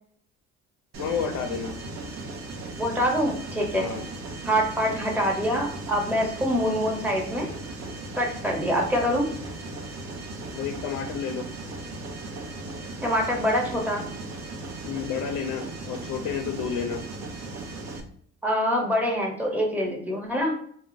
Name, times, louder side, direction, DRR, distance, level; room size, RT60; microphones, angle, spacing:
Mechanisms, 0.9-18.0, right 2 dB, 60° right, 0.7 m, -37 dB
voice 1, 1.0-1.7 3.7-4.1 10.5-11.5 14.8-17.0, left 7 dB, 80° left, 3 dB, 0.5 m, -30 dB
voice 2, 2.8-3.9 4.4-7.5 8.1-9.3 13.0-14.0 18.4-20.5, equal, 5° right, -2 dB, 1.0 m, -25 dB
2.3 x 2.1 x 3.8 m, 0.62 s
cardioid pair, 90°, 30 cm